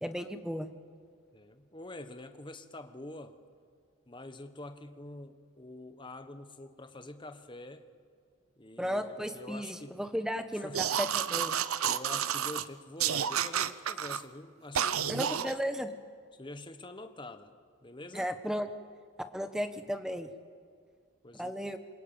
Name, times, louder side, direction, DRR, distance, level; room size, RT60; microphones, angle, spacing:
voice 1, 0.0-0.7 8.8-11.6 15.1-15.9 18.1-18.7 19.3-20.3 21.4-21.8, equal, 5° right, 8 dB, 1.2 m, -34 dB
voice 2, 1.3-3.4 4.1-7.9 8.6-10.0 10.5-10.9 11.8-15.6 16.3-17.5 17.8-18.3 21.2-21.5, left 2 dB, 20° left, 8 dB, 1.2 m, -46 dB
sound 1, 10.7-12.6 13.0-14.2 14.7-15.5, right 8 dB, 85° right, 0.8 m, -30 dB
27.5 x 23.5 x 9.1 m, 2.1 s
head